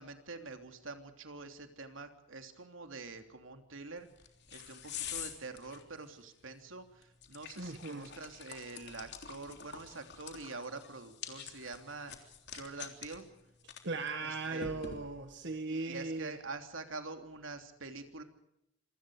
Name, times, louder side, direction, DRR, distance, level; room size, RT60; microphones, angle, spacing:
voice 1, 0.0-4.1 4.5-13.3 14.2-14.8 15.6-18.2, right 3 dB, 80° right, 6 dB, 3.1 m, -46 dB
sound 1, 4.0-15.4, left 8 dB, 60° left, 3.4 m, -48 dB
voice 2, 7.6-8.1 13.8-16.3, right 3 dB, 60° right, 7 dB, 1.8 m, -38 dB
27.5 x 24.5 x 5.0 m, 0.81 s
head